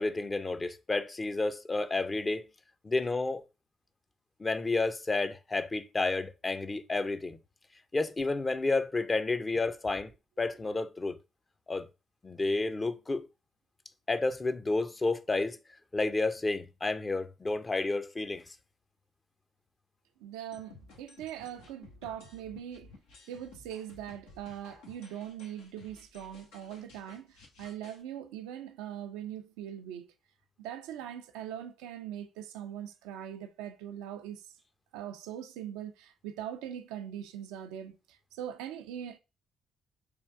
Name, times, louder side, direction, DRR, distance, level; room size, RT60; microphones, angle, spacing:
voice 1, 0.0-2.4 2.8-3.4 4.4-7.4 7.9-10.1 10.4-11.2 11.7-11.9 12.2-13.2 14.1-15.6 15.9-18.4, left 3 dB, 30° left, 0.6 m, -30 dB
voice 2, 20.2-22.9 23.3-30.1 30.6-34.4 34.9-39.2, right 10 dB, 85° right, 0.4 m, -41 dB
sound 1, 20.5-28.0, left 3 dB, 90° left, 1.1 m, -55 dB
3.5 x 2.5 x 4.6 m
hypercardioid pair, 55°, 0 cm